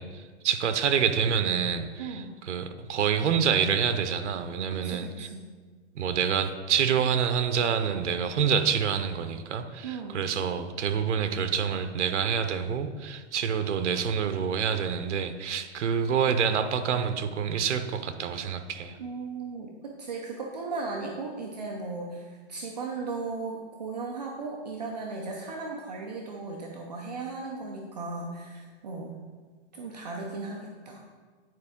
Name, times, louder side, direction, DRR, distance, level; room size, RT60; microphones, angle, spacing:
voice 1, 0.0-5.3 5.9-19.0, right 7 dB, 85° right, 9 dB, 0.7 m, -27 dB
voice 2, 2.0-2.3 4.7-5.5 9.8-10.2 19.0-29.2 29.7-31.0, right 3 dB, 35° right, 0 dB, 0.6 m, -36 dB
9.4 x 4.5 x 3.6 m, 1.5 s
hypercardioid pair, 175°, 35 cm